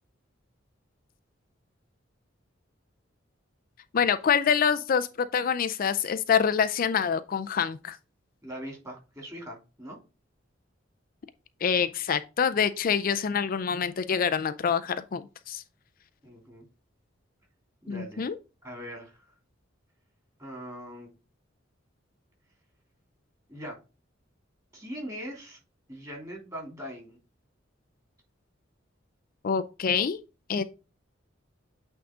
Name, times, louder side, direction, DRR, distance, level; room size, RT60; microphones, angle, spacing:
voice 1, 3.9-5.1 5.3-8.0 11.6-15.6 17.9-18.4 29.4-30.2 30.5-30.6, left 7 dB, 45° left, 0.4 m, -26 dB
voice 2, 8.4-10.0 16.2-16.7 17.8-18.3 18.6-19.4 20.4-21.1 23.5-23.8 24.7-25.6 25.9-27.2, equal, 15° right, 2.9 m, -41 dB
8.6 x 3.7 x 3.7 m
head